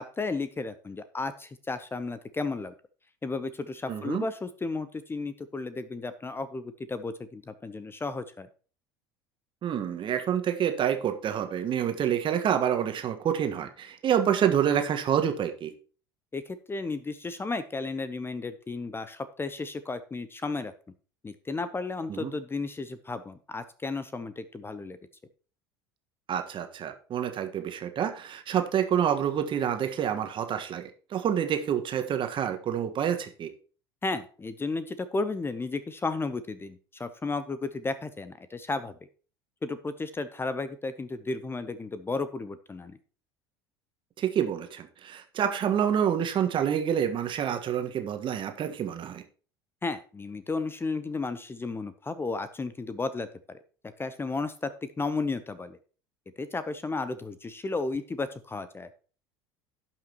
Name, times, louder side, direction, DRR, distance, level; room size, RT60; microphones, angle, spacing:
voice 1, 0.0-2.7 3.2-8.5 16.3-20.7 21.2-25.0 34.0-38.9 39.6-43.0 49.8-53.6 54.0-54.7 55.0-55.8 56.4-58.9, left 3 dB, 15° left, 13 dB, 0.7 m, -33 dB
voice 2, 3.9-4.2 9.6-15.7 22.1-22.3 26.3-33.5 44.2-49.2, right 9 dB, 40° right, 7 dB, 1.4 m, -28 dB
17.0 x 5.9 x 2.9 m, 0.39 s
figure-of-eight pair, 65°, 13 cm